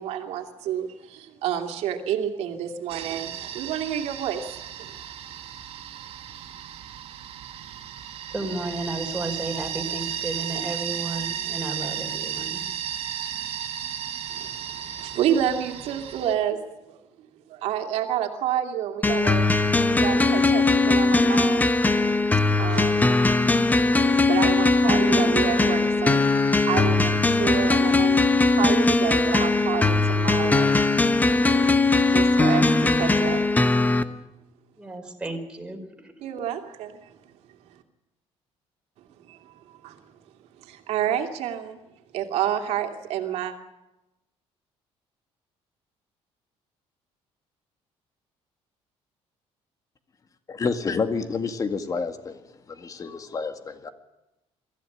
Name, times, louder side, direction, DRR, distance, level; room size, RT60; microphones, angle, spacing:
voice 1, 0.0-4.9 14.3-17.0 17.5-19.5 19.8-21.7 22.6-23.6 24.2-26.2 26.6-30.7 32.1-33.4 36.2-37.1 39.3-40.0 40.6-41.8 42.1-43.5, right 10 dB, 80° right, 4 dB, 2.8 m, -29 dB
sound 1, 2.9-16.4, right 10 dB, 65° right, 2.4 m, -34 dB
voice 2, 8.3-12.6 34.8-36.1, right 2 dB, 10° right, 3 dB, 4.5 m, -33 dB
sound 2, 19.0-34.0, left 3 dB, 15° left, 1.1 m, -20 dB
voice 3, 50.5-52.4 52.7-53.9, left 5 dB, 30° left, 7 dB, 2.0 m, -29 dB
23.5 x 15.0 x 10.0 m, 0.98 s
cardioid pair, 130°, 11 cm